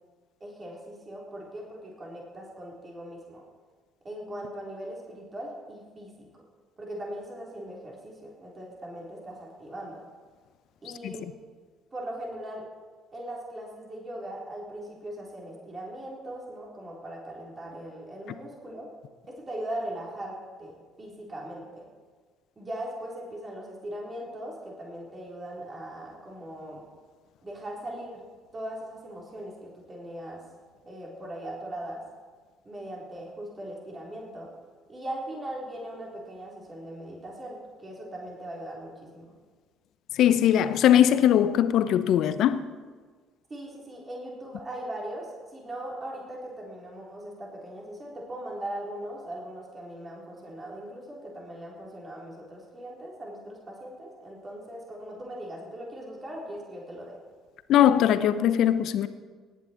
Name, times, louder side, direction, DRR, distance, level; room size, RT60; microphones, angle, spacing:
voice 1, 0.4-3.4 4.0-6.4 6.8-10.0 10.8-11.3 11.9-12.7 13.1-18.9 19.3-21.9 22.6-26.8 27.4-28.3 28.5-30.4 30.9-32.0 32.7-34.5 34.9-39.2 43.5-57.2, right 1 dB, 30° right, -2 dB, 3.8 m, -39 dB
voice 2, 40.1-42.6 57.7-59.1, left 10 dB, 60° left, 13 dB, 0.7 m, -20 dB
18.5 x 9.5 x 4.5 m, 1.5 s
hypercardioid pair, 55°, 0 cm